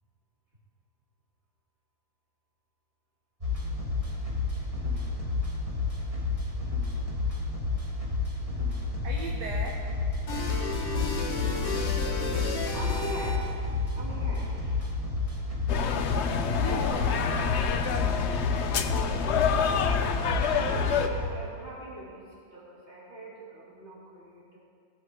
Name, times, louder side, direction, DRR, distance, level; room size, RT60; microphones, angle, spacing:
sound 1, 3.4-21.3, left 3 dB, 20° right, 1.6 m, -31 dB
voice 1, 9.0-9.9 16.4-17.6, right 3 dB, 70° right, 0 dB, 1.5 m, -38 dB
sound 2, 10.3-13.7, left 4 dB, 40° left, 1.3 m, -33 dB
voice 2, 10.4-11.4 12.7-14.9 20.5-24.6, right 1 dB, 35° right, -7 dB, 3.4 m, -41 dB
sound 3, 15.7-21.1, left 7 dB, 80° left, 0.6 m, -27 dB
18.0 x 7.6 x 4.8 m, 2.4 s
omnidirectional pair, 2.0 m